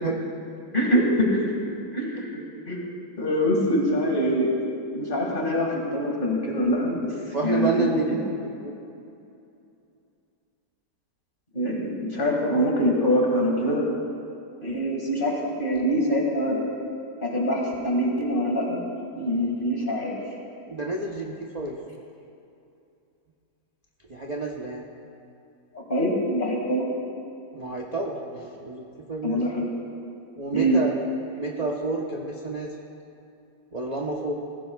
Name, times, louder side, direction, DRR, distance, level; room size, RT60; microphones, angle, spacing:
voice 1, 0.7-1.5 1.9-2.4 2.7-2.8 3.2-4.5 4.9-7.1 7.4-8.2 11.5-13.8 14.6-16.6 17.2-18.8 19.2-20.2 25.7-26.9 29.2-29.7 30.5-30.8, equal, 30° left, -2 dB, 2.2 m, -24 dB
voice 2, 7.3-8.7 20.7-21.8 24.1-24.8 27.5-29.4 30.4-30.9 31.4-32.7 33.7-34.3, right 3 dB, 30° right, -2 dB, 0.8 m, -29 dB
20.0 x 15.5 x 2.4 m, 2.6 s
omnidirectional pair, 1.8 m